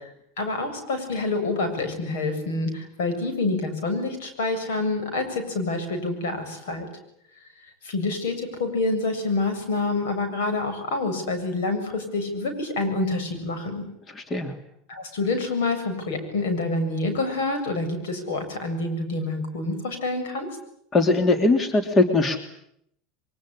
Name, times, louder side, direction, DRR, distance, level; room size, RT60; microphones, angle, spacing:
voice 1, 0.4-6.9 7.8-13.8 14.9-20.5, left 2 dB, 80° left, 7 dB, 7.5 m, -27 dB
voice 2, 14.2-14.5 20.9-22.4, left 3 dB, 30° left, 8 dB, 3.0 m, -20 dB
23.5 x 22.5 x 9.9 m, 0.72 s
supercardioid pair, 115°, 0 cm